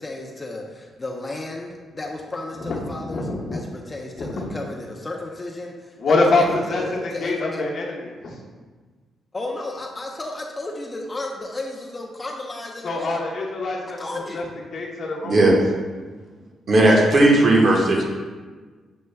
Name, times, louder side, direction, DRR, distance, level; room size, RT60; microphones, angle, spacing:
voice 1, 0.0-7.7 9.3-13.2 14.0-14.4, left 2 dB, 25° left, 0 dB, 0.4 m, -33 dB
voice 2, 2.6-3.6 4.2-4.5 6.0-8.4 12.8-14.1 14.3-14.4 14.7-15.4, left 2 dB, 60° left, -2 dB, 0.8 m, -24 dB
voice 3, 15.2-15.6 16.7-18.0, right 1 dB, 50° right, -1 dB, 0.9 m, -15 dB
6.3 x 2.2 x 3.2 m, 1.4 s
cardioid pair, 100°, 0 cm